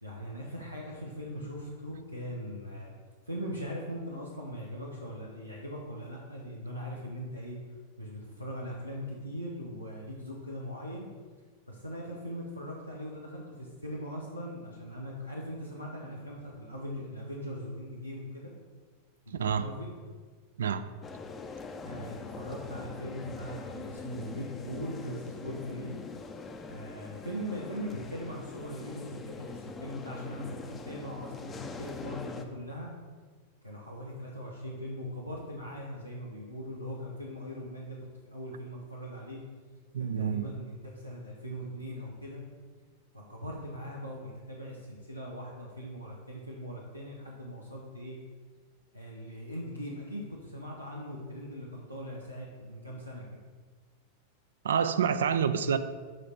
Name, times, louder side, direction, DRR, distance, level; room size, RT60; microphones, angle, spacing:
voice 1, 0.0-2.9 3.3-7.6 8.0-11.1 11.7-18.5 19.3-20.0 21.8-26.0 26.7-32.9 33.6-38.0 38.2-39.4 40.0-42.4 43.1-48.2 48.9-53.2, equal, 90° right, -3 dB, 0.7 m, -40 dB
voice 2, 19.3-19.7 20.6-20.8 39.9-40.5 54.6-55.8, right 7 dB, 65° right, 12 dB, 0.3 m, -27 dB
sound 1, 21.0-32.4, left 4 dB, 20° left, 0.5 m, -43 dB
7.6 x 3.3 x 4.3 m, 1.5 s
figure-of-eight pair, 90°, 0 cm